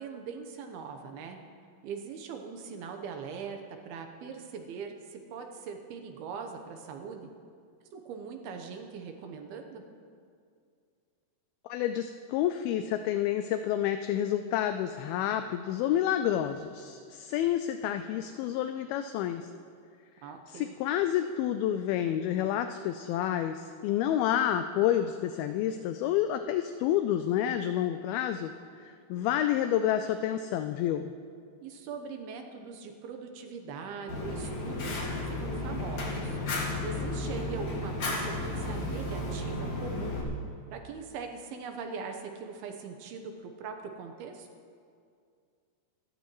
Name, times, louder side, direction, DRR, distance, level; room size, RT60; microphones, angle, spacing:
voice 1, 0.0-1.4 1.8-7.3 7.9-9.8 20.2-20.7 31.6-40.2 40.7-44.5, right 5 dB, 75° right, 4 dB, 2.8 m, -41 dB
voice 2, 11.7-19.5 20.5-28.5 28.9-31.1, left 11 dB, 80° left, 8 dB, 2.3 m, -29 dB
Fire, 34.1-40.2, left 2 dB, 50° left, 3.1 m, -33 dB
27.0 x 13.0 x 3.1 m, 2.3 s
omnidirectional pair, 4.7 m